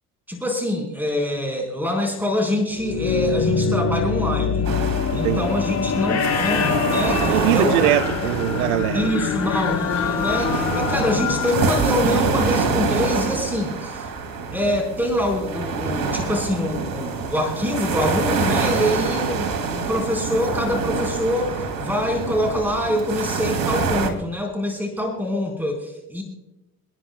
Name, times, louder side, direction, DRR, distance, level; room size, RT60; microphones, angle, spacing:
voice 1, 0.3-4.7 5.1-7.7 8.9-14.1 14.5-26.2, left 1 dB, 5° right, 4.2 m, -25 dB
sound 1, 2.7-12.6, left 6 dB, 40° left, 3.9 m, -25 dB
sound 2, 4.6-12.6, left 7 dB, 60° left, 3.3 m, -30 dB
sound 3, 4.6-24.1, right 4 dB, 50° right, 2.5 m, -26 dB
voice 2, 5.1-5.5 7.3-9.1, right 15 dB, 85° right, 0.5 m, -22 dB
29.5 x 10.5 x 2.2 m
hypercardioid pair, 70°, 43 cm